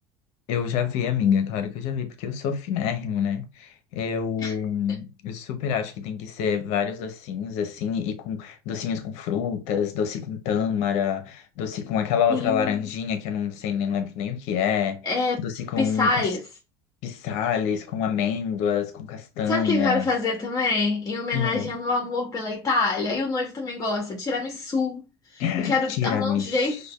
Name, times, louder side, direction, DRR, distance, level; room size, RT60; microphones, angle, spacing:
voice 1, 0.5-15.0 15.4-16.2 17.0-20.1 21.3-21.7 25.4-26.7, left 8 dB, 65° left, 0.7 m, -27 dB
voice 2, 12.3-12.8 15.0-15.4 15.8-16.4 19.5-26.8, left 3 dB, 30° left, 1.0 m, -26 dB
5.1 x 2.2 x 2.3 m
hypercardioid pair, 75°, 13 cm